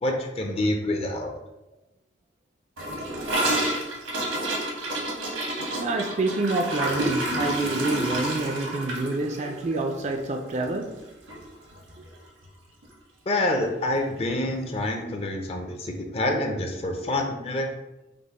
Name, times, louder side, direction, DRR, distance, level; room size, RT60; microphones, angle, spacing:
voice 1, 0.0-1.3 13.3-17.7, left 1 dB, 30° left, 0.5 m, -27 dB
Gurgling / Toilet flush, 2.8-11.0 11.3-11.4 11.7-12.1 12.4-12.5 12.8-12.9 13.9-14.0, right 1 dB, 85° right, 1.1 m, -29 dB
voice 2, 5.8-11.0, right 2 dB, 35° right, 0.4 m, -27 dB
5.2 x 2.1 x 4.0 m
head